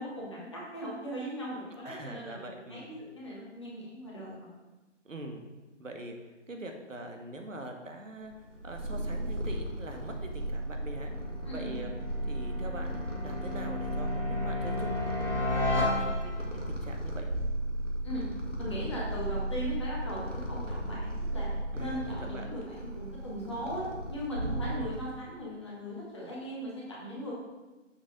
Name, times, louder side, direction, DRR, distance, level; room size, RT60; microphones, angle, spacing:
voice 1, 0.0-4.5 11.4-11.8 18.0-18.2 18.6-21.5 21.8-27.3, equal, 25° left, -6 dB, 1.3 m, -39 dB
voice 2, 1.8-2.9 5.0-5.4 5.8-6.2 6.5-8.3 8.6-11.1 11.5-11.9 12.3-17.3 21.7-22.5 24.7-25.0, right 1 dB, 90° right, 4 dB, 1.3 m, -43 dB
Purr, 8.3-25.1, right 1 dB, 75° right, 1.6 m, -35 dB
sound 1, 10.1-16.6, left 2 dB, 15° right, 1.2 m, -34 dB
7.1 x 3.9 x 5.1 m, 1.1 s
figure-of-eight pair, 170°, 37 cm